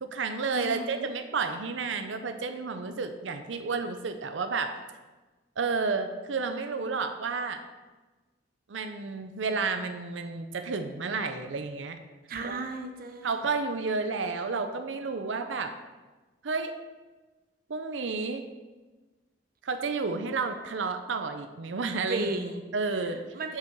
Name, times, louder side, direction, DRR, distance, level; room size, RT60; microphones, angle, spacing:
voice 1, 0.0-4.8 5.6-7.6 8.7-12.0 12.4-12.6 13.2-15.7 16.4-16.7 17.7-18.5 19.6-22.3 22.7-23.2 23.5-23.6, right 4 dB, 85° right, 8 dB, 0.6 m, -31 dB
voice 2, 0.5-1.1 12.3-13.5 22.1-22.6 23.0-23.6, right 2 dB, 55° right, 5 dB, 0.7 m, -35 dB
6.7 x 5.9 x 6.2 m, 1.2 s
head